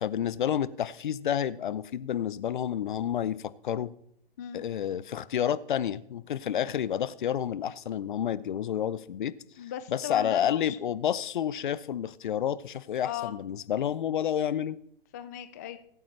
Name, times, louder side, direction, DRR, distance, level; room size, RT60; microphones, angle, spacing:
voice 1, 0.0-3.9 4.5-9.3 9.9-14.8, left 9 dB, 55° left, 17 dB, 0.7 m, -30 dB
voice 2, 9.6-10.8 13.0-13.3 15.1-15.8, left 11 dB, 20° left, 10 dB, 0.4 m, -37 dB
22.5 x 8.6 x 3.3 m, 0.70 s
hypercardioid pair, 145°, 29 cm